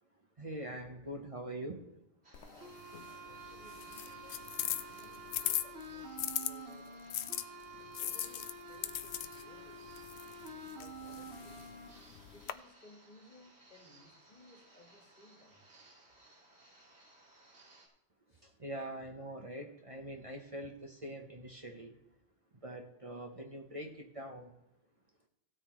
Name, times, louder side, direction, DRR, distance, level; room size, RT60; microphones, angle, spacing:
voice 1, 0.4-1.9 18.4-21.9 22.6-24.5, right 1 dB, 35° right, 1.0 m, -43 dB
sound 1, 2.2-17.9, right 2 dB, 85° right, 2.5 m, -61 dB
sound 2, 2.3-6.5 7.1-12.5, left 11 dB, 85° left, 0.9 m, -40 dB
voice 2, 2.3-7.1 7.8-9.8 10.8-11.6 12.3-15.6 18.3-18.5 19.1-19.4, left 2 dB, 45° left, 1.7 m, -61 dB
sound 3, 2.6-11.9, right 2 dB, 70° right, 1.5 m, -49 dB
16.5 x 8.7 x 3.1 m
omnidirectional pair, 1.1 m